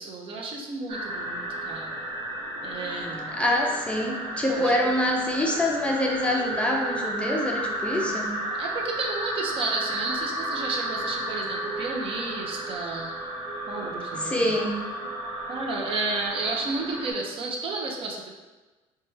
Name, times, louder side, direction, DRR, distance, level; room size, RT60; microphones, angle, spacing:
voice 1, 0.0-2.0 2.6-3.4 4.5-4.9 7.8-13.2 13.7-14.6 15.0-15.1 15.5-18.3, right 3 dB, 50° right, 0 dB, 0.6 m, -32 dB
sound 1, 0.9-17.1, right 1 dB, 75° right, 0.8 m, -33 dB
voice 2, 3.3-8.3 14.1-14.8, left 1 dB, 10° left, -1 dB, 0.4 m, -25 dB
3.1 x 2.2 x 3.1 m, 1.2 s
cardioid pair, 95°, 12 cm